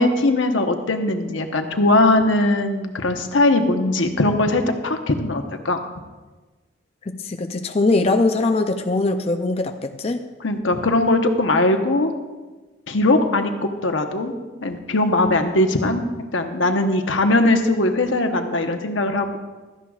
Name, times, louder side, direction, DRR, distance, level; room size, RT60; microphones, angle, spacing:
voice 1, 0.0-5.9 10.4-12.1 12.9-13.5 13.8-14.3 14.6-16.0 16.3-19.4, left 2 dB, 85° left, 5 dB, 1.1 m, -20 dB
voice 2, 7.1-10.3, left 2 dB, 30° left, 6 dB, 0.4 m, -21 dB
16.5 x 13.0 x 2.4 m, 1.3 s
head